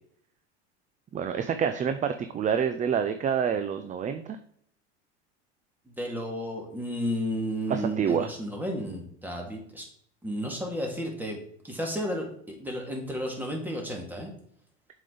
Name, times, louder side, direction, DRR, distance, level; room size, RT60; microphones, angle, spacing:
voice 1, 1.1-4.4 7.7-8.3, right 7 dB, 20° right, 9 dB, 0.5 m, -27 dB
voice 2, 5.9-9.9 10.2-11.4 11.6-14.3, equal, 5° right, 1 dB, 2.2 m, -33 dB
7.4 x 5.2 x 3.9 m, 0.66 s
hypercardioid pair, 100°, 34 cm